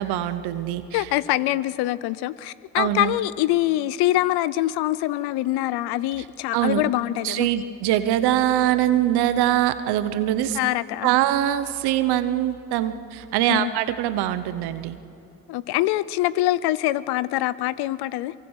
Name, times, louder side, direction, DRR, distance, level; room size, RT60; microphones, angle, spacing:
voice 1, 0.0-1.1 2.8-3.1 6.5-6.8 7.2-10.6 11.0-15.0, right 12 dB, 85° right, 13 dB, 1.0 m, -23 dB
voice 2, 0.9-7.5 10.5-11.1 13.5-13.7 15.5-18.3, left 16 dB, 80° left, 19 dB, 0.7 m, -24 dB
24.5 x 23.5 x 6.4 m, 2.7 s
hypercardioid pair, 45°, 38 cm